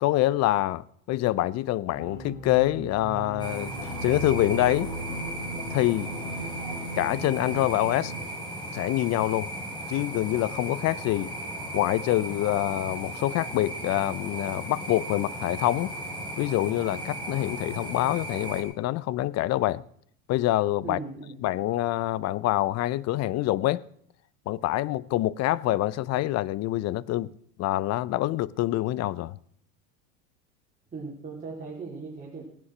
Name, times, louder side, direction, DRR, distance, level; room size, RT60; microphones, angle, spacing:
voice 1, 0.0-3.7 4.0-4.9 5.7-6.1 7.0-8.1 8.7-9.5 9.9-11.3 11.7-15.9 16.4-19.8 20.3-21.0 21.4-23.8 24.5-27.3 27.6-29.4, left 15 dB, 35° left, 0.6 m, -26 dB
sound 1, 1.9-8.3, right 1 dB, 60° left, 6.0 m, -37 dB
sound 2, 3.4-18.6, right 1 dB, 10° left, 4.6 m, -36 dB
voice 2, 20.8-21.4 30.9-32.4, right 4 dB, 20° right, 3.7 m, -38 dB
17.5 x 9.7 x 6.1 m
hypercardioid pair, 95°, 45 cm